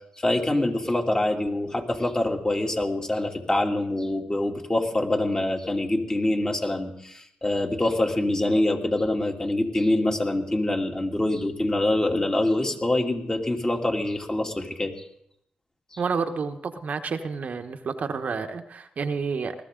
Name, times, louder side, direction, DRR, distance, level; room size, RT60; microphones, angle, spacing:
voice 1, 0.2-15.0 15.9-16.0, left 1 dB, 25° left, 2 dB, 2.8 m, -25 dB
voice 2, 16.0-19.5, right 5 dB, 55° right, 7 dB, 1.1 m, -29 dB
20.0 x 14.0 x 3.8 m, 0.71 s
cardioid pair, 60°, 3 cm